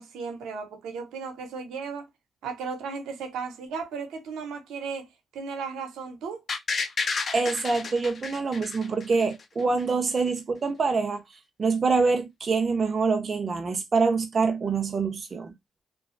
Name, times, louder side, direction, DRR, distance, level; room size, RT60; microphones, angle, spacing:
voice 1, 0.0-2.1 2.4-5.1 5.3-6.4, right 5 dB, 85° right, 0.8 m, -35 dB
sound 1, 6.5-9.4 9.8-9.9, left 4 dB, 55° left, 0.6 m, -31 dB
voice 2, 7.3-11.2 11.6-15.5, right 4 dB, 50° right, 0.4 m, -25 dB
2.8 x 2.3 x 2.4 m
supercardioid pair, 55°, 0 cm